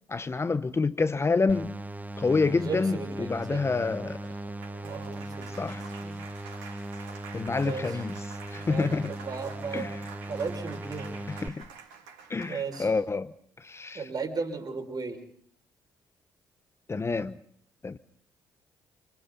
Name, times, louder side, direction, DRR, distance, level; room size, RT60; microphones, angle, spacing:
voice 1, 0.1-1.7 2.2-4.2 5.6-5.8 7.3-8.2 8.5-9.1 9.7-10.0 11.3-11.6 12.3-14.1 16.9-17.4 17.8-18.0, left 4 dB, 30° left, 1.0 m, -28 dB
sound 1, 1.5-11.5, right 1 dB, 15° right, 1.2 m, -38 dB
voice 2, 2.6-3.7 4.8-5.7 6.0-6.2 7.6-8.0 8.6-10.0 10.3-11.3 12.5-12.9 13.9-15.2, right 5 dB, 45° right, 5.9 m, -36 dB
Applause, 3.8-13.0, right 6 dB, 80° right, 4.0 m, -48 dB
30.0 x 28.5 x 4.1 m
hypercardioid pair, 50°, 9 cm